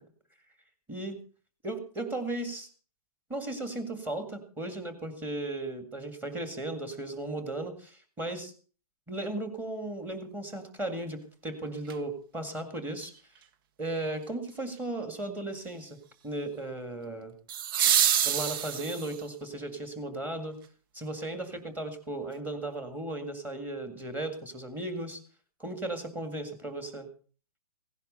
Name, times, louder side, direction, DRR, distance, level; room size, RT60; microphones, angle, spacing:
voice 1, 0.9-1.2 1.6-2.7 3.3-8.5 9.1-13.1 13.8-16.0 16.2-17.3 18.2-20.6 20.9-25.2 25.6-27.1, right 2 dB, 10° right, 7 dB, 2.1 m, -36 dB
sound 1, 11.9-12.0 17.5-19.3 21.5-21.6, right 9 dB, 35° right, 0.6 m, -26 dB
16.5 x 10.5 x 5.5 m, 0.41 s
hypercardioid pair, 155°, 20 cm